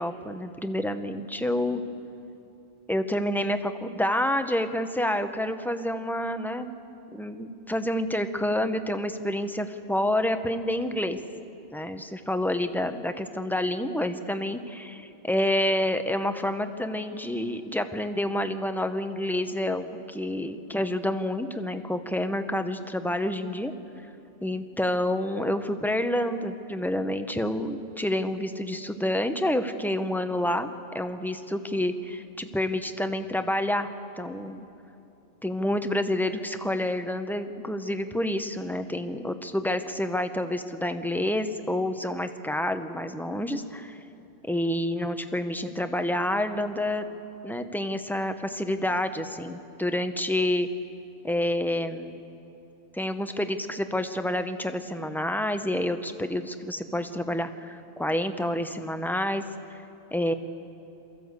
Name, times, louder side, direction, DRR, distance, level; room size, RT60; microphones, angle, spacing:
voice 1, 0.0-1.8 2.9-6.8 7.1-11.2 11.7-23.7 24.4-33.9 34.2-34.6 35.4-44.0 44.4-47.1 47.4-50.7 51.2-52.2 52.9-59.4 59.7-59.8 60.1-60.3, left 1 dB, ahead, 8 dB, 0.6 m, -28 dB
23.0 x 14.5 x 8.1 m, 2.8 s
omnidirectional pair, 1.1 m